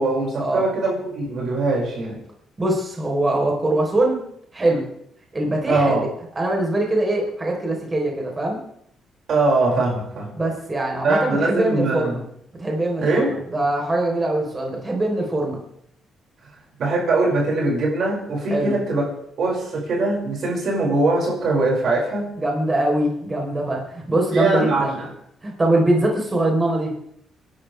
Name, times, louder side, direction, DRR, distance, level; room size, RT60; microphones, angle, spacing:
voice 1, 0.0-2.2 5.7-6.1 9.3-10.3 11.0-12.2 13.0-13.3 16.8-19.0 19.4-22.3 24.3-25.1, right 2 dB, 55° right, -3 dB, 5.9 m, -21 dB
voice 2, 2.6-4.2 4.5-4.9 5.3-6.0 6.4-8.6 10.4-12.2 12.6-15.6 18.5-18.8 22.4-25.0 25.4-26.9, right 1 dB, 20° right, 0 dB, 4.0 m, -22 dB
30.0 x 11.5 x 3.5 m, 0.71 s
cardioid pair, 130°, 0 cm